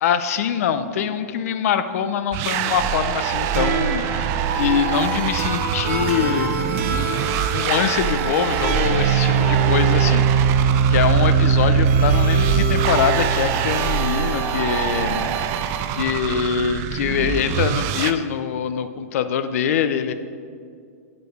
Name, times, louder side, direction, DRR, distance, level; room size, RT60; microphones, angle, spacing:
voice 1, 0.0-4.3 4.5-7.2 7.5-10.6 10.9-15.3 15.9-20.1, left 8 dB, 65° left, 11 dB, 0.5 m, -24 dB
sound 1, 2.3-18.1, right 9 dB, 35° right, 0.3 m, -25 dB
sound 2, 3.5-16.0, right 6 dB, 55° right, 0.8 m, -22 dB
8.1 x 5.0 x 4.6 m, 2.2 s
hypercardioid pair, 145°, 9 cm